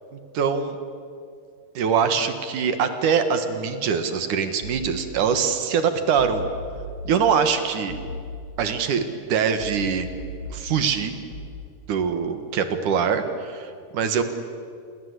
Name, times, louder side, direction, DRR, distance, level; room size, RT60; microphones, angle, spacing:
voice 1, 0.3-0.8 1.7-6.4 7.0-8.0 8.6-10.1 10.5-11.1 11.9-14.2, right 6 dB, 60° right, 8 dB, 2.6 m, -23 dB
sound 1, 4.6-5.5 6.2-7.5 7.9-9.0 9.6-11.5, left 1 dB, 25° left, 8.0 m, -37 dB
28.0 x 23.5 x 8.2 m, 2.3 s
omnidirectional pair, 4.7 m